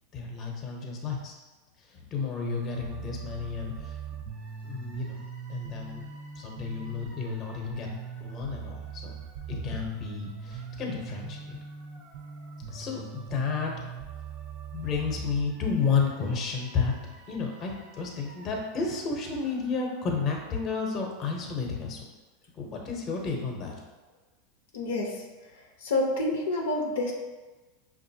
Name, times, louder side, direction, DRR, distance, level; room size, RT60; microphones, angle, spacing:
voice 1, 0.1-1.4 1.9-4.0 4.6-6.0 6.4-7.9 8.2-9.1 9.5-11.6 12.7-13.7 14.7-16.9 17.3-22.1 22.5-23.8, left 5 dB, 35° left, 1 dB, 0.8 m, -31 dB
sound 1, 2.2-20.4, right 7 dB, 55° right, 0.7 m, -42 dB
voice 2, 24.7-25.1 25.8-27.1, left 2 dB, 90° left, 0 dB, 0.7 m, -27 dB
5.4 x 2.5 x 2.7 m, 1.2 s
supercardioid pair, 120°, 0 cm